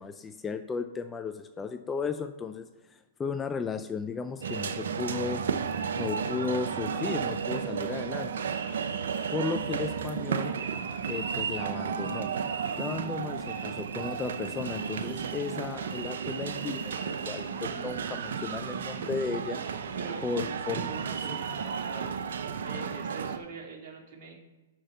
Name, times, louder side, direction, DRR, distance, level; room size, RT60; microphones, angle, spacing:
voice 1, 0.0-5.4 6.0-8.5 9.3-10.5 11.1-12.3 12.8-19.6 20.2-20.9 21.3-21.4, left 5 dB, 15° left, 9 dB, 0.5 m, -35 dB
sound 1, 4.4-23.4, right 6 dB, 75° right, 0.7 m, -33 dB
voice 2, 20.7-22.2 22.6-24.3, right 4 dB, 45° right, -1 dB, 3.0 m, -43 dB
6.1 x 6.1 x 6.7 m, 1.2 s
hypercardioid pair, 125°, 0 cm